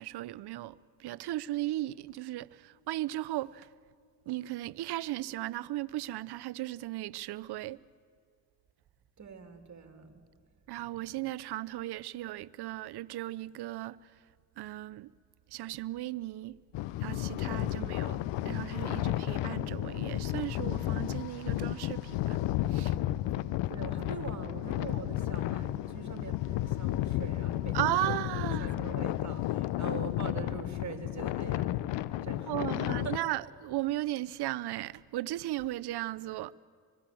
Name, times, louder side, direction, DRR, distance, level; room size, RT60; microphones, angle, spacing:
voice 1, 0.0-3.7 4.3-7.8 10.7-14.1 14.6-15.1 15.5-16.6 17.0-18.2 18.4-22.4 22.7-23.0 27.7-28.7 32.5-36.5, right 16 dB, 60° right, 0.7 m, -36 dB
voice 2, 9.2-10.3 17.7-18.3 23.7-31.7 32.2-33.1, right 5 dB, 40° right, 3.0 m, -43 dB
sound 1, 16.7-33.2, left 14 dB, 75° left, 0.8 m, -32 dB
25.5 x 20.5 x 7.7 m
supercardioid pair, 60°, 43 cm